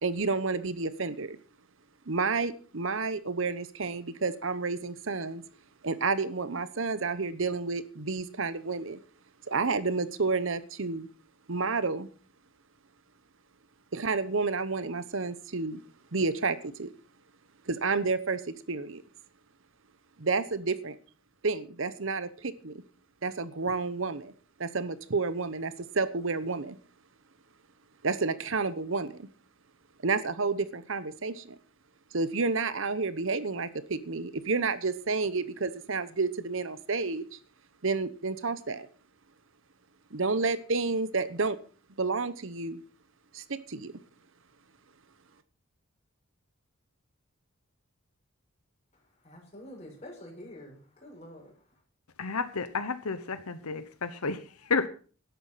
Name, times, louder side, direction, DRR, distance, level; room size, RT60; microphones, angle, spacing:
voice 1, 0.0-1.4 2.1-5.4 5.8-9.0 9.5-11.1 11.5-12.1 13.9-15.8 16.1-16.9 17.7-19.0 20.2-21.0 21.4-22.8 23.2-24.3 24.6-26.8 28.0-29.3 30.0-31.6 32.1-37.4 37.8-38.9 40.1-41.6 42.0-42.8 43.3-43.9, right 4 dB, 60° right, 0.9 m, -30 dB
voice 2, 48.9-51.6, left 1 dB, 30° left, 6.5 m, -47 dB
voice 3, 52.2-54.9, left 4 dB, 85° left, 1.0 m, -31 dB
12.5 x 10.5 x 5.7 m
head